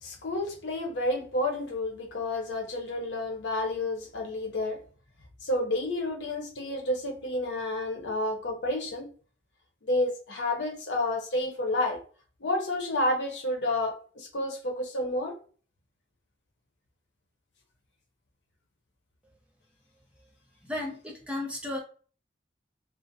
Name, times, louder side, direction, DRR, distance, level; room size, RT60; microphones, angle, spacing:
voice 1, 0.0-4.8 5.4-9.1 9.8-12.0 12.4-15.3, left 1 dB, 90° left, 0.7 m, -30 dB
voice 2, 20.6-21.8, left 1 dB, 5° right, 0.5 m, -34 dB
2.5 x 2.0 x 2.5 m
head